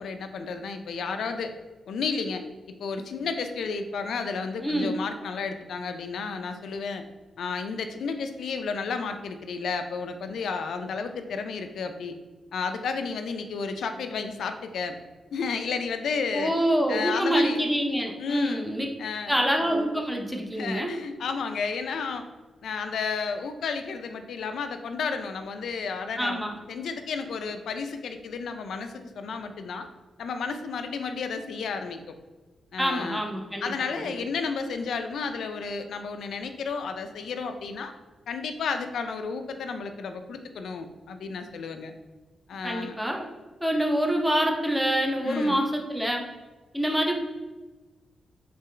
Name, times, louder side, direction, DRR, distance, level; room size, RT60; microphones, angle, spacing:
voice 1, 0.0-1.5 1.9-2.5 2.8-7.0 7.4-12.1 12.5-15.0 15.3-16.5 16.9-17.6 18.2-18.7 19.0-19.4 20.5-22.2 22.6-26.4 26.7-29.9 30.2-32.0 32.7-33.2 33.6-37.9 38.3-41.9 42.5-42.9 45.2-45.6, left 5 dB, 70° left, 7 dB, 0.4 m, -32 dB
voice 2, 4.6-4.9 16.3-18.9 19.3-20.9 26.2-26.5 32.8-34.1 42.6-43.2 43.6-46.2 46.7-47.1, equal, ahead, 1 dB, 0.5 m, -26 dB
3.7 x 3.3 x 3.2 m, 1.2 s
wide cardioid pair, 160°, 0 cm